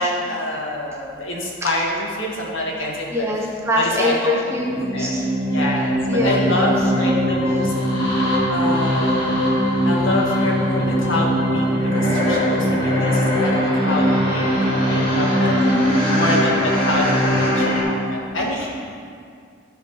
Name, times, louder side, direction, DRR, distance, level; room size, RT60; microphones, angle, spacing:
voice 1, 0.0-4.4 4.6-5.1 5.5-7.7 8.5-9.3 9.8-15.5 16.1-18.7, left 1 dB, 75° left, -2 dB, 1.7 m, -26 dB
voice 2, 3.1-5.3 6.1-6.7 7.0-7.7 15.5-16.6, left 1 dB, 15° right, -2 dB, 1.0 m, -24 dB
sound 1, 4.5-17.8, equal, 25° left, 2.0 m, -20 dB
12.5 x 4.6 x 5.5 m, 2.3 s
head